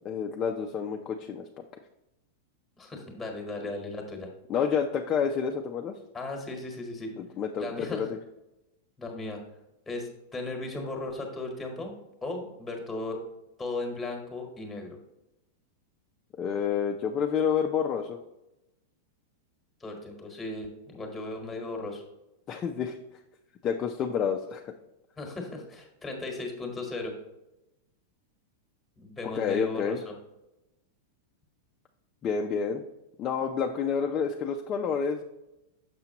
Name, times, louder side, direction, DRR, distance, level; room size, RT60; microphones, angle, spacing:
voice 1, 0.0-1.4 4.5-5.9 7.2-8.2 16.4-18.2 22.5-23.0 23.6-24.7 29.3-30.0 32.2-32.8 33.2-35.2, left 6 dB, 25° left, 2 dB, 0.4 m, -29 dB
voice 2, 2.8-4.3 6.1-7.1 7.6-8.1 9.0-9.4 9.9-11.9 12.2-13.2 13.6-15.0 19.8-22.0 25.2-27.2 29.0-30.1, left 2 dB, 5° left, 2 dB, 1.3 m, -36 dB
6.8 x 5.8 x 2.9 m, 0.95 s
supercardioid pair, 160°, 0 cm